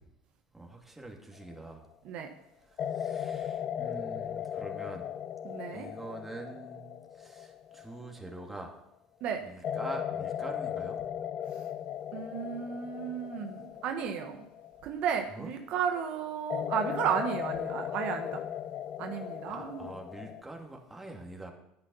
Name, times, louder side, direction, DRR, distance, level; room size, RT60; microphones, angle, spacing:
voice 1, 0.5-1.9 2.6-5.1 5.7-8.8 9.4-11.0 15.3-15.5 19.5-21.5, right 2 dB, 10° right, 1 dB, 2.5 m, -45 dB
sound 1, 1.4-1.8 2.8-8.7 9.6-15.6 16.5-20.4, left 9 dB, 45° left, 0.5 m, -37 dB
voice 2, 5.4-5.9 9.2-9.4 12.1-14.4 14.8-18.4 19.0-19.8, right 7 dB, 60° right, 5 dB, 1.3 m, -33 dB
9.8 x 9.6 x 5.6 m, 0.81 s
supercardioid pair, 90°, 2 cm